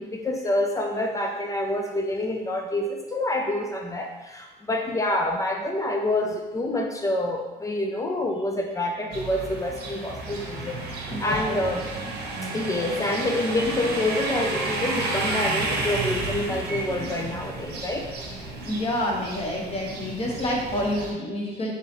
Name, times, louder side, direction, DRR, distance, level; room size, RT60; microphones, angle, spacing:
voice 1, 0.0-11.9 12.5-18.1, left 1 dB, 20° left, 2 dB, 0.4 m, -27 dB
sound 1, 9.1-21.1, right 2 dB, 75° right, 0.9 m, -31 dB
voice 2, 11.1-11.6 18.6-21.7, left 1 dB, 35° left, -1 dB, 1.0 m, -28 dB
4.0 x 3.8 x 2.9 m, 1.1 s
cardioid pair, 110°, 17 cm